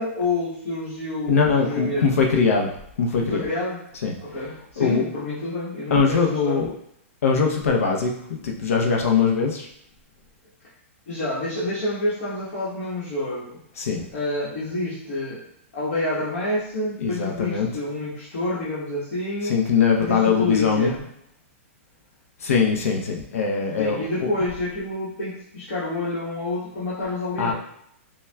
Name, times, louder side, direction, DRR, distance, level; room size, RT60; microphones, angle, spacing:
voice 1, 0.0-2.2 3.2-3.8 4.2-6.7 11.1-13.6 14.1-15.4 15.7-19.6 20.0-21.0 23.8-27.5, left 2 dB, 65° left, -9 dB, 1.3 m, -28 dB
voice 2, 1.3-2.7 3.0-3.4 4.0-4.1 4.8-5.0 5.9-6.7 7.2-9.7 13.8-14.0 17.0-17.7 19.4-20.9 22.4-24.0 27.4-27.5, left 5 dB, 90° left, 1 dB, 0.7 m, -21 dB
5.5 x 2.3 x 2.3 m, 0.73 s
hypercardioid pair, 165°, 7 cm